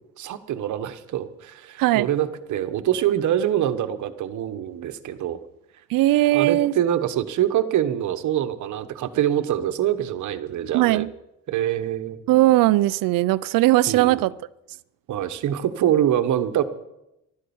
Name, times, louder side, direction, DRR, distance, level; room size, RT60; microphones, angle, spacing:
voice 1, 0.2-5.4 6.3-11.0 11.5-12.2 13.9-14.2 15.1-16.6, right 11 dB, 60° right, 10 dB, 1.2 m, -25 dB
voice 2, 1.8-2.1 5.9-6.7 10.7-11.1 12.3-14.3, right 16 dB, 80° right, 17 dB, 0.6 m, -19 dB
14.5 x 12.5 x 7.1 m, 0.88 s
cardioid pair, 150°, 33 cm